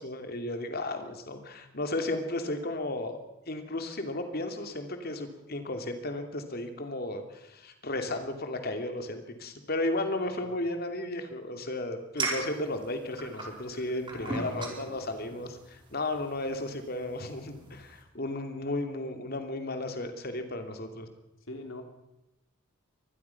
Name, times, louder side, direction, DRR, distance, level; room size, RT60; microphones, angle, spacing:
voice 1, 0.0-3.2 3.5-21.1, left 2 dB, 50° left, 6 dB, 2.8 m, -34 dB
sound 1, 12.2-18.0, right 3 dB, 25° right, 4.6 m, -39 dB
voice 2, 14.1-15.0 21.5-21.8, left 2 dB, 70° left, 5 dB, 3.5 m, -43 dB
24.5 x 20.0 x 6.0 m, 0.95 s
head